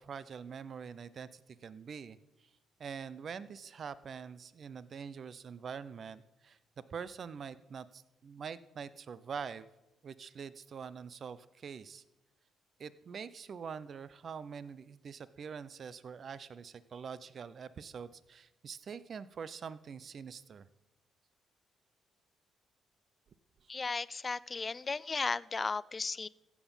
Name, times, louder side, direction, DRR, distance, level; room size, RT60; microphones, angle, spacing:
voice 1, 0.0-2.2 2.8-6.6 6.9-9.7 10.0-12.0 12.8-20.7, right 6 dB, 50° right, 16 dB, 0.6 m, -44 dB
voice 2, 23.7-26.3, left 4 dB, 30° left, 20 dB, 0.4 m, -35 dB
15.0 x 7.2 x 5.6 m, 0.96 s
cardioid pair, 90°, 0 cm